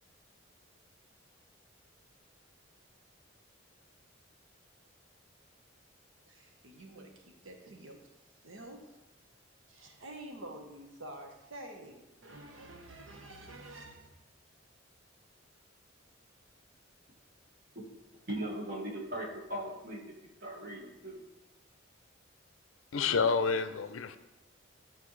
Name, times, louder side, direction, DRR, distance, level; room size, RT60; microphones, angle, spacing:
voice 1, 6.3-8.0 8.4-9.0 9.7-14.1, right 1 dB, 85° right, 1.2 m, -48 dB
voice 2, 18.3-20.0 20.4-21.2, right 1 dB, 45° right, 1.6 m, -38 dB
voice 3, 22.9-24.2, left 5 dB, 80° left, 0.5 m, -29 dB
11.0 x 4.4 x 3.2 m
head